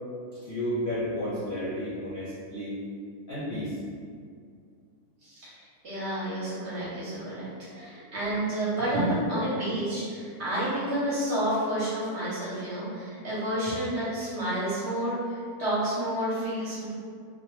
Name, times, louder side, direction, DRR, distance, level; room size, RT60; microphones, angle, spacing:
voice 1, 0.3-2.8 3.3-3.7 7.9-8.0, equal, 50° left, -12 dB, 0.6 m, -32 dB
voice 2, 5.2-16.9, right 1 dB, 55° right, -10 dB, 1.0 m, -30 dB
2.5 x 2.1 x 3.0 m, 2.2 s
omnidirectional pair, 1.6 m